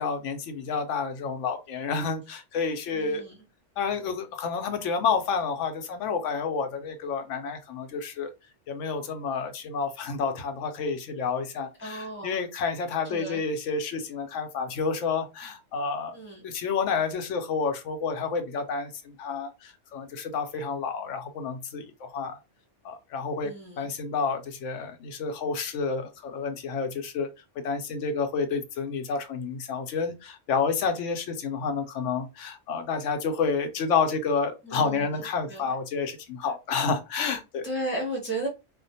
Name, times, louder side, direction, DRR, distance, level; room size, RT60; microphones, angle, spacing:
voice 1, 0.0-3.2 3.8-8.3 8.7-16.1 16.4-22.4 22.8-27.3 27.6-37.7, left 5 dB, 90° left, 0.9 m, -29 dB
voice 2, 2.9-3.3 11.8-12.4 13.0-13.4 16.1-16.4 23.4-23.9 34.6-35.2 35.5-35.7 37.6-38.5, right 1 dB, 15° right, 0.4 m, -34 dB
2.4 x 2.1 x 2.6 m
omnidirectional pair, 1.2 m